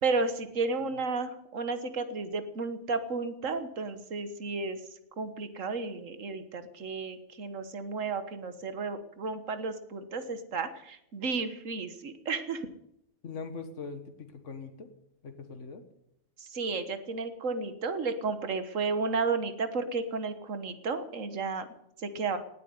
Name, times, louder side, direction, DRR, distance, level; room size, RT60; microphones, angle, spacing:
voice 1, 0.0-4.8 5.2-12.6 16.4-21.7 22.0-22.4, right 4 dB, 85° right, 10 dB, 1.7 m, -33 dB
voice 2, 13.2-14.9 15.2-15.8, left 4 dB, 75° left, 7 dB, 1.8 m, -41 dB
18.5 x 8.5 x 9.2 m, 0.78 s
omnidirectional pair, 1.3 m